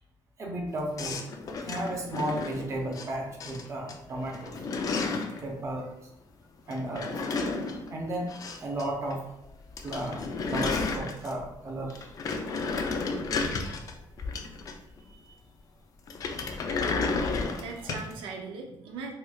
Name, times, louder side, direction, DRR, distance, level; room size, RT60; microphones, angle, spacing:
voice 1, 0.4-1.2 1.6-4.6 5.4-6.1 6.7-7.1 7.9-9.2 9.8-12.1 12.8-13.0 13.5-13.7 15.2-15.3 17.3-17.6, right 1 dB, 35° right, -1 dB, 0.8 m, -34 dB
sound 1, 1.0-3.1 3.4-3.9 4.2-5.4 6.7-8.8 9.1-9.2 9.5-9.6 9.8-11.5 11.9-15.0 16.1-18.1, left 4 dB, 45° left, 0.4 m, -32 dB
voice 2, 16.7-19.1, right 4 dB, 85° right, 2 dB, 0.5 m, -41 dB
4.2 x 2.4 x 2.3 m, 0.82 s
cardioid pair, 135°, 8 cm